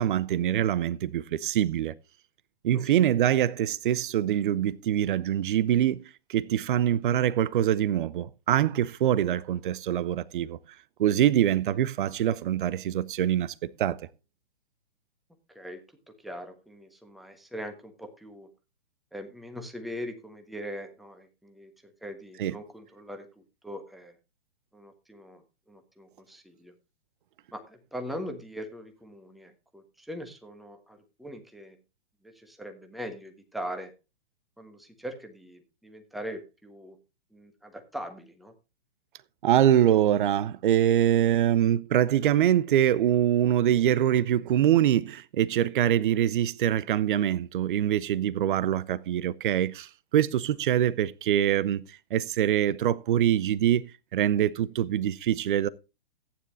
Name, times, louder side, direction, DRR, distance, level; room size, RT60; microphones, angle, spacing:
voice 1, 0.0-1.9 2.6-6.0 6.3-10.6 11.0-14.0 22.4-22.5 39.4-51.8 52.1-53.8 54.1-55.7, right 11 dB, 50° right, 0.7 m, -24 dB
voice 2, 15.5-18.5 19.1-24.1 24.7-25.4 25.7-26.7 27.5-31.8 32.2-33.9 34.6-37.0 37.3-38.5, equal, ahead, 1.2 m, -41 dB
14.5 x 9.7 x 2.6 m
figure-of-eight pair, 120°, 33 cm